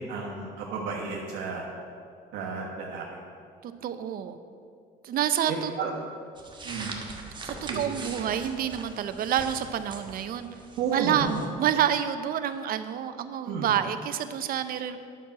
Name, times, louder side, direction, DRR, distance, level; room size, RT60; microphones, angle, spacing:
voice 1, 0.1-1.6 2.3-3.0 5.5-5.9 6.6-6.9 7.7-7.9 10.8-11.4 13.4-13.7, right 5 dB, 85° right, -3 dB, 1.3 m, -32 dB
voice 2, 3.6-4.4 5.0-5.7 7.4-10.5 10.9-11.3 11.6-15.0, right 9 dB, 60° right, 10 dB, 0.6 m, -28 dB
sound 1, 6.4-11.5, right 3 dB, 25° right, 1.2 m, -41 dB
10.0 x 6.2 x 5.8 m, 2.3 s
cardioid pair, 110°, 17 cm